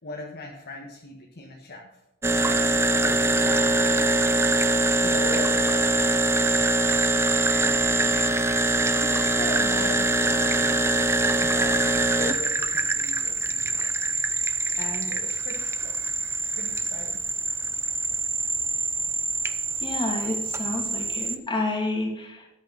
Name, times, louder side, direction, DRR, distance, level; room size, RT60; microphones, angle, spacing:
voice 1, 0.0-2.0 2.3-4.6 5.0-6.7 7.4-10.9 11.4-14.5 14.8-15.9 16.5-17.2, left 1 dB, 50° left, -1 dB, 1.6 m, -40 dB
sound 1, 2.2-21.4, right 2 dB, 10° right, 0.6 m, -24 dB
voice 2, 19.8-22.5, left 2 dB, 25° left, 0 dB, 2.7 m, -29 dB
13.0 x 10.0 x 4.1 m, 0.86 s
head